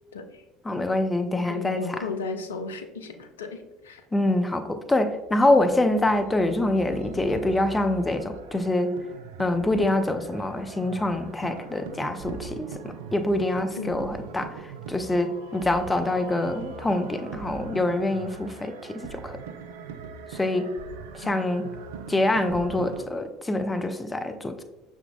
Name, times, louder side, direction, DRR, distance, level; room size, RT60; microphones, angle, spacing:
voice 1, 0.6-2.1 4.1-9.0 9.4-14.6 14.9-19.4 20.3-20.7 21.1-21.7 22.1-24.6, left 1 dB, 15° left, 7 dB, 0.4 m, -25 dB
voice 2, 1.5-4.0 13.8-14.0 21.2-21.4, left 4 dB, 75° left, 7 dB, 0.4 m, -35 dB
sound 1, 4.9-23.1, right 6 dB, 65° right, 0.3 m, -41 dB
5.7 x 3.6 x 2.3 m, 1.0 s
figure-of-eight pair, 65°, 0 cm